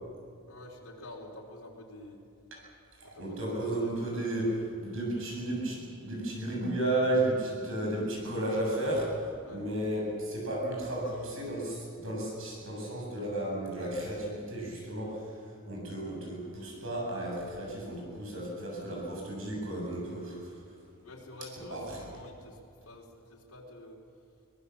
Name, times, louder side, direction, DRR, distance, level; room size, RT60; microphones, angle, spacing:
voice 1, 0.5-2.2 3.0-4.5 9.4-9.7 21.0-24.0, left 1 dB, 80° left, -3 dB, 3.9 m, -48 dB
voice 2, 3.0-15.4 15.6-20.6 21.7-21.8, right 1 dB, 65° right, -1 dB, 7.3 m, -33 dB
24.5 x 18.5 x 7.2 m, 2.4 s
head